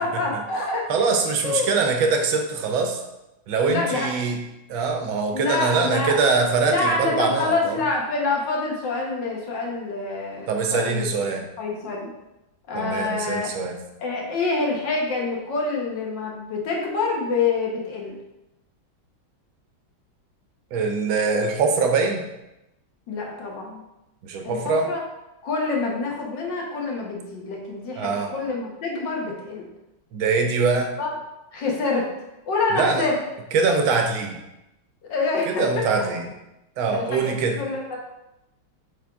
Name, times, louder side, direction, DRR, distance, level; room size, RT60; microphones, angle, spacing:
voice 1, 0.0-0.9 1.4-1.7 3.7-4.1 5.3-6.2 6.7-11.2 11.6-12.1 12.7-13.5 14.0-18.2 23.1-23.8 24.4-25.0 25.4-29.7 31.0-31.1 31.5-32.1 32.5-33.2 35.1-36.1 36.9-38.0, left 3 dB, 65° left, -1 dB, 1.8 m, -26 dB
voice 2, 0.9-3.0 3.5-4.4 4.7-7.8 10.5-11.4 12.7-13.7 20.7-22.2 24.2-24.9 28.0-28.3 30.1-30.9 32.7-33.0 33.5-34.4 35.5-36.3 36.8-37.6, right 4 dB, 80° right, 4 dB, 1.6 m, -23 dB
7.8 x 3.8 x 3.5 m, 0.93 s
omnidirectional pair, 2.2 m